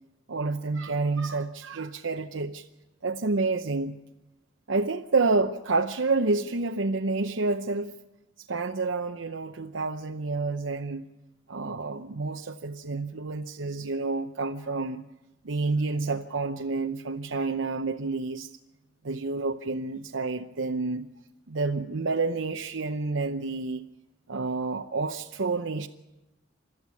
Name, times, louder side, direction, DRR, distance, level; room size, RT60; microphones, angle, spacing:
voice 1, 0.3-2.7 3.0-4.0 4.7-7.9 8.5-11.1 11.5-15.0 15.4-18.5 19.0-21.1 21.5-23.8 24.3-25.9, right 3 dB, 80° right, 3 dB, 0.8 m, -29 dB
29.5 x 13.5 x 8.5 m, 1.0 s
head